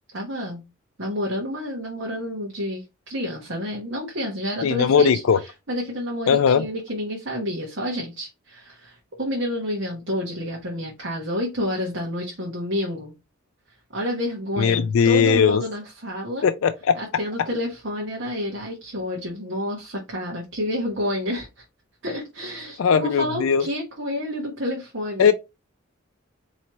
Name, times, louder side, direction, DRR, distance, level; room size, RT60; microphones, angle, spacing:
voice 1, 0.1-0.6 1.0-5.2 5.7-13.1 13.9-16.5 16.9-21.6 22.0-25.3, left 1 dB, 60° right, 1.2 m, -29 dB
voice 2, 4.6-5.4 6.3-6.7 14.6-15.6 16.4-17.0 22.8-23.6 25.2-25.3, left 6 dB, 80° left, 0.4 m, -18 dB
4.5 x 3.1 x 2.9 m
head